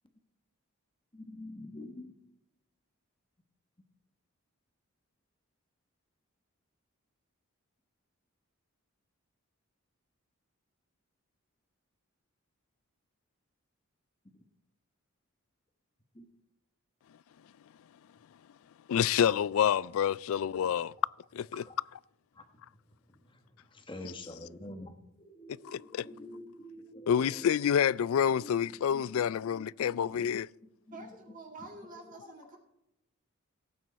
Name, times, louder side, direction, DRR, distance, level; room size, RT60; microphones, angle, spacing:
voice 1, 1.1-2.1 16.1-16.3 21.7-21.8 22.3-22.4 23.3-27.5 28.4-29.2 29.6-30.3 30.9-31.2 32.0-32.2, left 1 dB, 20° left, 1.3 m, -47 dB
voice 2, 18.9-20.9 21.3-21.6 25.5-26.1 27.1-30.5, left 8 dB, 70° left, 0.3 m, -28 dB
voice 3, 30.9-32.6, right 2 dB, 35° right, 2.2 m, -48 dB
17.0 x 9.2 x 4.1 m
head